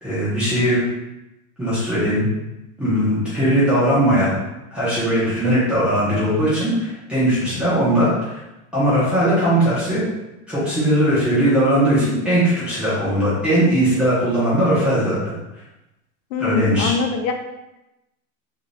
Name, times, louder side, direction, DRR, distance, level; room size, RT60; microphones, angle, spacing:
voice 1, 0.0-0.8 1.6-2.3 2.8-4.4 4.7-8.4 8.7-10.0 10.5-15.2 16.4-16.9, right 1 dB, 5° right, -12 dB, 0.4 m, -19 dB
voice 2, 16.3-17.3, left 5 dB, 75° left, 5 dB, 0.5 m, -23 dB
2.6 x 2.5 x 3.0 m, 0.95 s
supercardioid pair, 170°, 40 cm